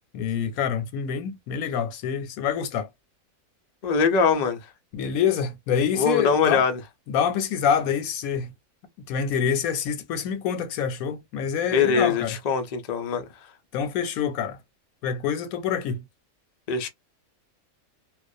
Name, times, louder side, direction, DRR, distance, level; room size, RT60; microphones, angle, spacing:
voice 1, 0.1-2.9 4.9-6.6 7.1-8.5 9.1-12.4 13.7-14.6 15.0-16.0, left 7 dB, 85° left, 1.0 m, -26 dB
voice 2, 3.8-4.6 6.0-6.8 11.7-13.2 16.7-16.9, left 5 dB, 70° left, 0.3 m, -22 dB
2.4 x 2.1 x 2.5 m
omnidirectional pair, 1.5 m